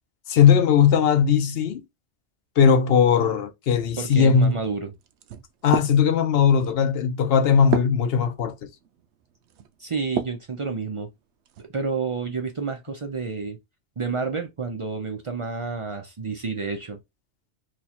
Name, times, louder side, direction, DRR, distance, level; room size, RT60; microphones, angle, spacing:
voice 1, 0.3-1.8 2.6-4.5 5.6-8.6, left 7 dB, 65° left, 0.8 m, -19 dB
voice 2, 4.0-4.9 9.8-11.1 11.7-13.6 14.0-17.0, right 4 dB, 45° right, 0.4 m, -30 dB
sound 1, 4.0-10.5 11.0-11.7, right 7 dB, 75° right, 0.8 m, -34 dB
3.1 x 2.3 x 4.1 m
omnidirectional pair, 1.2 m